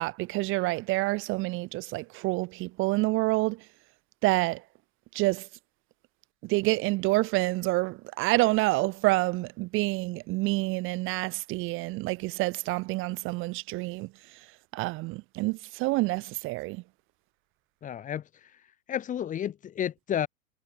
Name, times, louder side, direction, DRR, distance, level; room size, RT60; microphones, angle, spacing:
voice 1, 0.0-3.6 4.2-4.6 5.1-5.5 6.4-14.1 14.7-16.8, right 22 dB, 30° right, 1.0 m, -28 dB
voice 2, 17.8-18.2 18.9-20.3, left 10 dB, 20° left, 1.4 m, -31 dB
hypercardioid pair, 125°, 39 cm